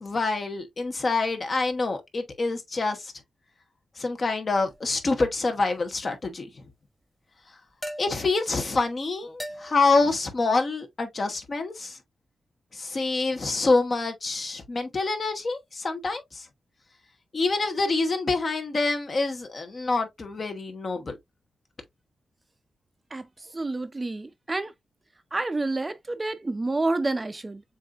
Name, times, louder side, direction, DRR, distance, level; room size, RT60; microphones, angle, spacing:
voice 1, 0.0-3.1 4.0-6.6 8.0-12.0 12.7-16.5 17.3-21.2, left 3 dB, 45° left, 1.2 m, -26 dB
sound 1, 4.5-4.9 7.8-8.4 9.4-10.0, equal, ahead, 1.1 m, -39 dB
voice 2, 23.1-24.7 25.3-27.6, right 2 dB, 25° right, 0.5 m, -29 dB
7.1 x 2.6 x 2.4 m
wide cardioid pair, 95°, 0 cm